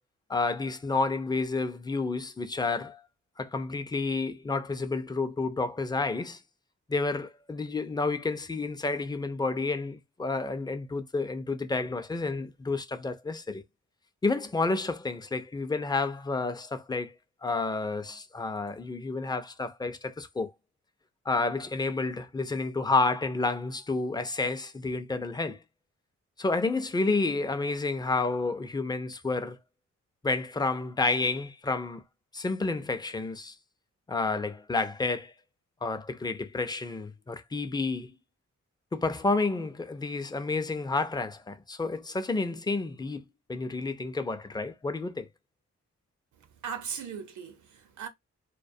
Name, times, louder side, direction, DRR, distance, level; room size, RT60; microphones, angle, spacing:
voice 1, 0.3-3.0 3.4-6.4 6.9-13.6 14.2-17.1 17.4-20.5 21.3-25.6 26.4-29.6 30.2-32.0 32.3-33.5 34.1-35.3 35.8-38.1 38.9-45.3, left 3 dB, 15° left, 0.4 m, -30 dB
voice 2, 46.4-48.1, right 7 dB, 80° right, 0.7 m, -38 dB
2.2 x 2.2 x 2.6 m
cardioid pair, 80°, 29 cm